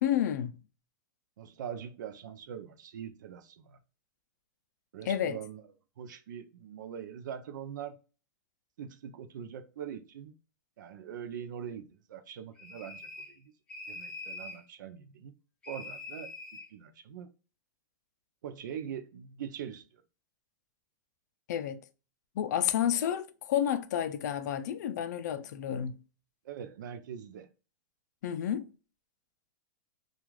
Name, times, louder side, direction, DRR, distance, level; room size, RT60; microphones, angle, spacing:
voice 1, 0.0-0.5 5.1-5.4 21.5-21.8 22.4-26.0 28.2-28.7, left 10 dB, 65° left, 0.4 m, -30 dB
voice 2, 1.4-3.8 4.9-5.6 6.0-8.0 8.8-10.3 10.8-13.5 13.9-15.3 15.7-16.3 16.7-17.3 18.4-20.0 26.4-27.5, right 8 dB, 80° right, 0.5 m, -42 dB
sound 1, 12.6-13.4 13.7-14.6 15.6-16.7, left 2 dB, 10° left, 0.6 m, -44 dB
3.1 x 2.4 x 2.3 m
supercardioid pair, 165°, 10 cm